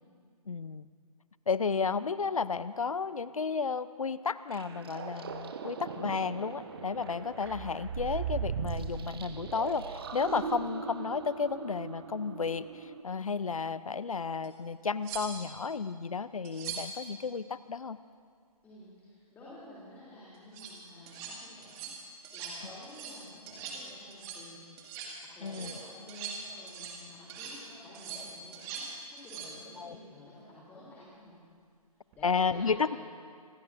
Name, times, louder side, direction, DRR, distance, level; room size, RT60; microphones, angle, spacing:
voice 1, 0.5-0.9 1.5-18.0 25.4-25.7 29.8-30.0 32.2-33.0, left 5 dB, 60° left, 16 dB, 0.6 m, -32 dB
sound 1, 4.5-13.0, right 6 dB, 40° right, 1.1 m, -39 dB
sound 2, 14.4-14.5 15.0-15.6 16.4-17.0 20.3-20.7 21.1-21.3 21.6-22.0 22.2-22.6 22.8-23.2 23.5-23.8 24.1-24.5 24.8-25.1 25.5-27.0 27.3-27.6 27.9-28.9 29.2-29.5 32.1-32.3, right 6 dB, 15° right, 1.9 m, -42 dB
voice 2, 18.6-24.6 25.2-28.9 29.1-31.4 32.1-33.0, left 1 dB, 10° left, -9 dB, 3.2 m, -51 dB
27.0 x 20.0 x 2.6 m, 2.1 s
figure-of-eight pair, 140°, 20 cm